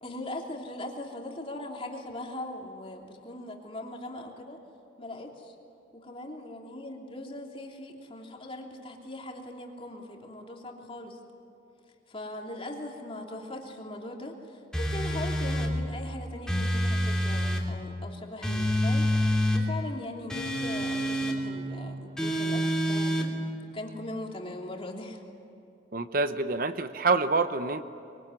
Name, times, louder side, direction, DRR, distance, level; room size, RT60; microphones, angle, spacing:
voice 1, 0.0-4.6 5.0-5.5 5.9-11.2 12.1-23.3 23.7-25.2, left 1 dB, 30° left, 0 dB, 3.2 m, -40 dB
sound 1, 14.7-15.7 16.5-17.7 18.4-19.6 20.3-21.4 22.2-23.3, equal, 5° left, 3.1 m, -27 dB
voice 2, 25.9-27.8, right 3 dB, 50° right, 10 dB, 0.9 m, -26 dB
24.0 x 23.5 x 9.9 m, 2.7 s
head